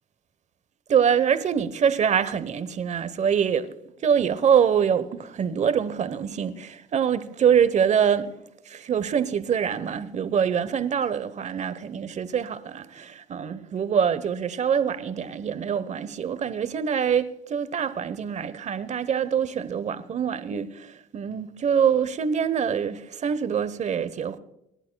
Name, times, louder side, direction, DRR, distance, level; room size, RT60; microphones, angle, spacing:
voice 1, 0.9-3.7 4.0-24.4, right 7 dB, 45° right, 1.0 m, -24 dB
27.0 x 11.5 x 2.3 m
cardioid pair, 110°, 17 cm